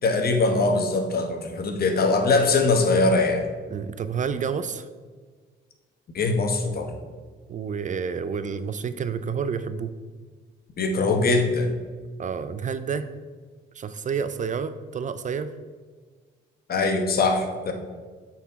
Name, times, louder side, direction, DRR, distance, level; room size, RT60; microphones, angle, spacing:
voice 1, 0.0-3.5 6.1-6.9 10.8-11.7 16.7-17.7, left 3 dB, 50° left, 5 dB, 1.0 m, -22 dB
voice 2, 3.7-4.9 7.5-9.9 12.2-13.1 13.7-15.5, right 6 dB, 40° right, 12 dB, 0.4 m, -29 dB
7.9 x 4.2 x 4.1 m, 1.5 s
cardioid pair, 90°, 20 cm